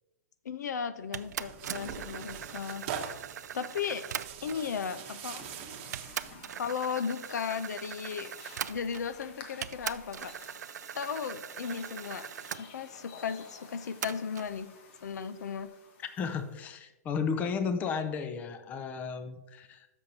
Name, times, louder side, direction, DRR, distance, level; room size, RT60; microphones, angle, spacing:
voice 1, 0.4-2.9 3.5-4.1 4.4-5.4 6.6-8.3 8.7-10.3 10.9-12.3 12.6-14.7 15.0-15.7, left 6 dB, 80° left, 13 dB, 0.6 m, -35 dB
Tearing, 1.1-6.5, right 8 dB, 40° right, 0.9 m, -43 dB
sound 1, 1.1-4.7 5.4-5.5 5.9-9.2 9.6-12.6 14.0-14.5, right 9 dB, 85° right, 0.4 m, -41 dB
sound 2, 4.8-16.6, left 4 dB, 45° left, 1.3 m, -53 dB
voice 2, 16.0-19.9, left 6 dB, 20° left, 9 dB, 0.5 m, -34 dB
13.0 x 6.3 x 2.8 m, 1.0 s
hypercardioid pair, 150°, 9 cm